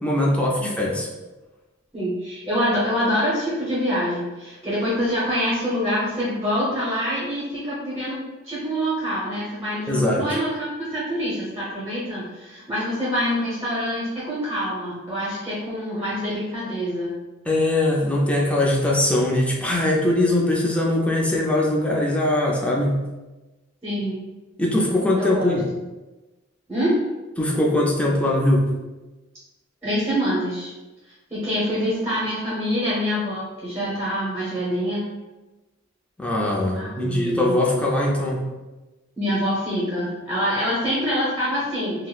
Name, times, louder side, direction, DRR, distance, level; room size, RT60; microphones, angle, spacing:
voice 1, 0.0-1.1 9.9-10.3 17.5-23.1 24.6-25.6 27.4-28.7 36.2-38.4, left 1 dB, 5° left, -3 dB, 0.4 m, -21 dB
voice 2, 1.9-17.2 23.8-24.2 25.2-25.5 26.7-27.0 29.8-30.7 31.3-35.1 36.7-37.6 39.2-42.1, equal, 15° right, -8 dB, 0.9 m, -25 dB
3.9 x 2.0 x 2.4 m, 1.1 s
head